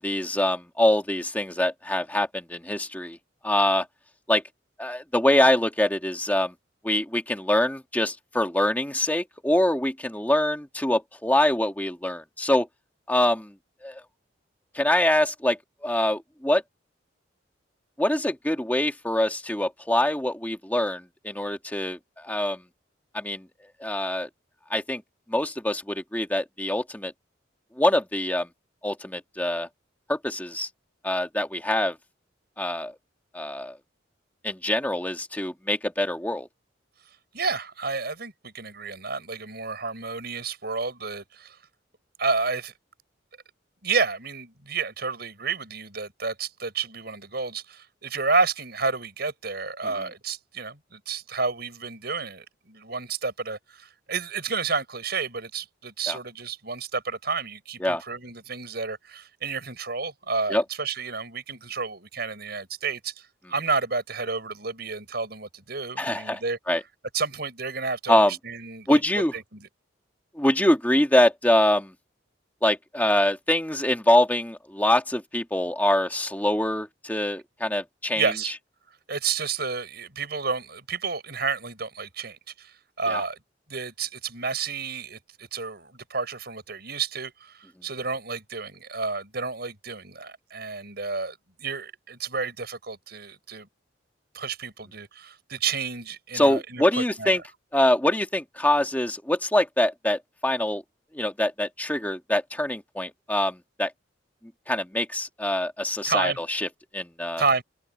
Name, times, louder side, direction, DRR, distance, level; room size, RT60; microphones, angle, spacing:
voice 1, 0.0-3.2 3.4-3.9 4.3-4.4 4.8-6.5 6.8-12.7 13.1-13.5 13.8-14.0 14.7-15.6 15.8-16.6 18.0-22.6 23.1-23.4 23.8-24.3 24.7-25.0 25.3-27.1 27.8-28.5 28.8-29.7 30.1-30.7 31.0-32.0 32.6-32.9 33.3-33.8 34.4-36.5 56.1-56.2 57.8-58.0 60.5-60.6 66.0-66.4 66.7-66.8 68.1-68.3 68.9-69.3 70.4-71.9 72.6-78.5 83.1-83.2 96.3-97.4 97.7-100.8 101.1-103.9 104.7-106.7 106.9-107.4, left 1 dB, 10° left, 1.9 m, -24 dB
voice 2, 37.3-41.6 42.2-42.7 43.8-66.6 67.1-69.7 78.1-78.5 79.1-82.7 83.0-83.4 83.7-93.7 94.3-97.4 106.1-106.4 107.4-107.6, right 4 dB, 55° right, 7.8 m, -30 dB
head